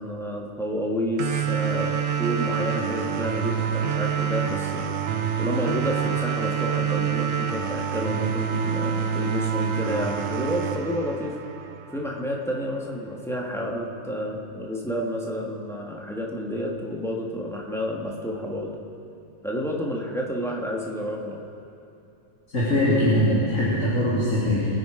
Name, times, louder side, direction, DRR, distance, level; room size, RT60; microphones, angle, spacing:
voice 1, 0.0-11.4 11.9-18.8 19.4-21.4, equal, ahead, -2 dB, 1.6 m, -30 dB
sound 1, 1.2-12.2, right 8 dB, 80° right, 1.2 m, -27 dB
voice 2, 22.5-24.7, left 1 dB, 85° left, -10 dB, 3.5 m, -21 dB
23.5 x 9.2 x 5.1 m, 2.7 s
omnidirectional pair, 1.4 m